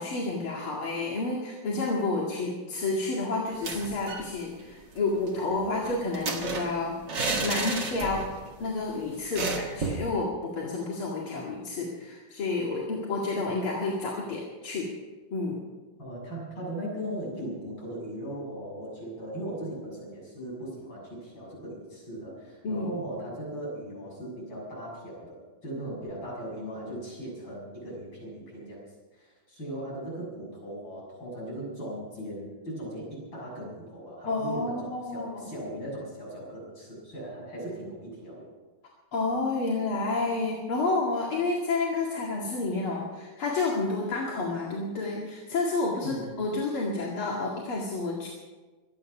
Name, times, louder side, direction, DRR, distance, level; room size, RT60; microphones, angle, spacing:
voice 1, 0.0-6.9 7.4-8.2 8.6-14.9 15.3-15.6 22.6-22.9 34.3-35.4 39.1-48.3, left 3 dB, 90° left, -3 dB, 3.0 m, -30 dB
sound 1, 3.5-4.3 4.6-4.7 5.0-8.4 8.7-8.8 9.4-10.1, right 3 dB, 55° right, 2.5 m, -32 dB
voice 2, 16.0-28.8 29.1-38.5 46.0-46.3, right 1 dB, 65° left, -4 dB, 8.0 m, -38 dB
25.0 x 9.5 x 6.0 m, 1.3 s
omnidirectional pair, 2.3 m